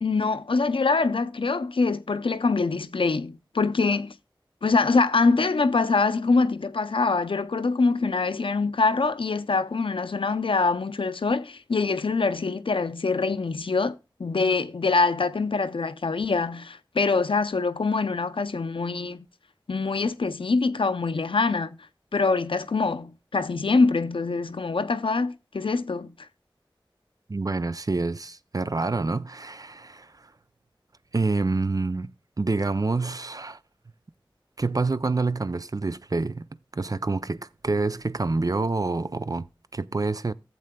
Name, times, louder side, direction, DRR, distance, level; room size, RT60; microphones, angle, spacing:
voice 1, 0.0-4.1 4.6-19.2 19.7-21.8 22.1-26.3, left 4 dB, 90° left, 0.5 m, -24 dB
voice 2, 27.3-30.1 31.1-32.1 32.4-33.6 34.6-36.5 36.7-39.5 39.7-40.3, right 3 dB, 45° right, 0.4 m, -27 dB
15.5 x 7.6 x 2.2 m
wide cardioid pair, 45°, 9 cm